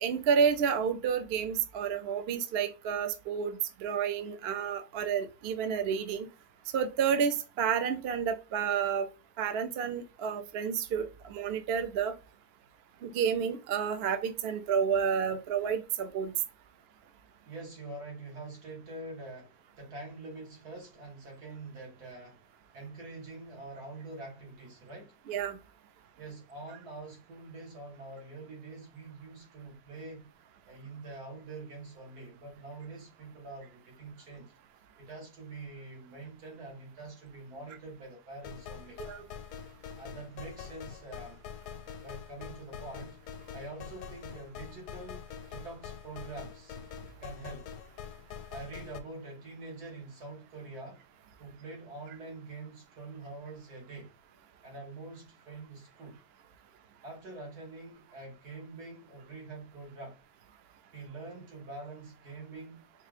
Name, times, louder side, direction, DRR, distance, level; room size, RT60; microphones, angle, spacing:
voice 1, 0.0-6.3 6.7-9.1 9.4-12.1 13.0-16.3 25.3-25.6 39.0-39.3, right 7 dB, 60° right, 0.6 m, -30 dB
voice 2, 17.5-22.4 22.7-25.2 26.2-30.3 30.7-34.5 35.0-39.0 40.0-41.4 42.0-43.2 43.5-45.2 45.5-46.8 47.2-47.7 48.5-51.0 51.4-54.1 54.6-56.2 57.0-60.2 60.9-62.9, right 2 dB, 75° right, 2.3 m, -45 dB
sound 1, 38.4-49.0, left 7 dB, 85° left, 1.1 m, -45 dB
4.5 x 2.4 x 3.3 m
omnidirectional pair, 1.7 m